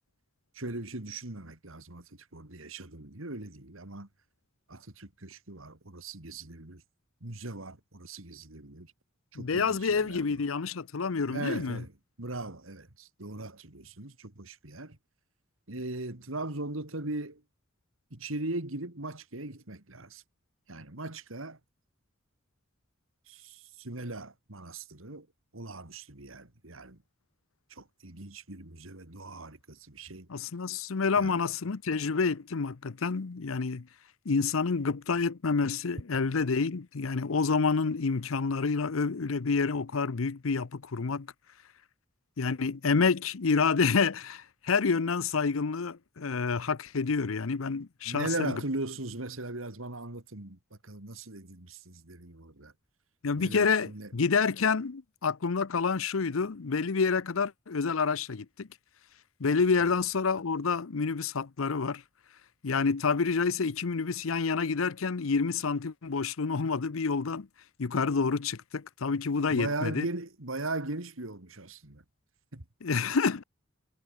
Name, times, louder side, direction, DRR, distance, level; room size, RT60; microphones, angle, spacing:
voice 1, 0.5-4.1 4.7-6.8 7.2-8.9 9.3-10.3 11.3-11.9 12.2-15.0 15.7-17.4 18.1-20.2 20.7-21.6 23.3-25.3 25.5-27.0 27.7-30.3 31.2-31.4 48.1-52.7 53.3-54.1 59.9-60.0 69.5-72.0 72.5-72.6, right 2 dB, 75° right, 2.9 m, -39 dB
voice 2, 9.4-11.8 30.3-33.9 34.3-41.3 42.4-48.5 53.2-58.7 59.4-62.0 62.6-67.5 67.8-70.1 72.8-73.4, left 5 dB, 80° left, 0.7 m, -28 dB
head